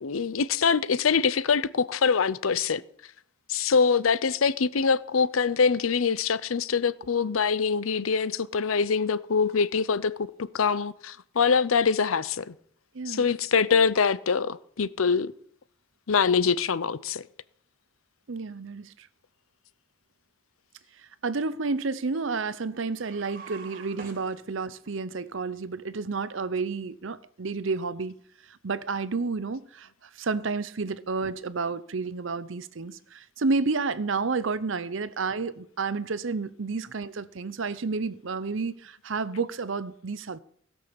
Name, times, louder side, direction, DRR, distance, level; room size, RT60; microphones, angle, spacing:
voice 1, 0.0-2.8 3.5-12.5 13.1-15.3 16.1-17.2, left 5 dB, 90° left, 0.6 m, -24 dB
voice 2, 12.9-13.3 18.3-19.1 21.2-28.2 28.5-40.4, right 4 dB, 65° right, 0.7 m, -30 dB
sound 1, 22.9-24.9, right 4 dB, 45° right, 2.4 m, -46 dB
16.5 x 6.2 x 7.0 m
head